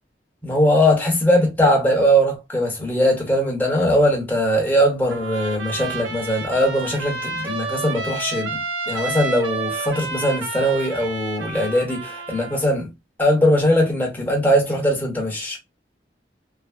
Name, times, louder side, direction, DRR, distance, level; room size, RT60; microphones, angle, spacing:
voice 1, 0.4-8.6 8.9-12.9 13.2-15.6, equal, 10° left, 1.0 m, -20 dB
Trumpet, 5.1-12.7, right 3 dB, 90° right, 0.8 m, -30 dB
3.3 x 2.1 x 2.4 m
head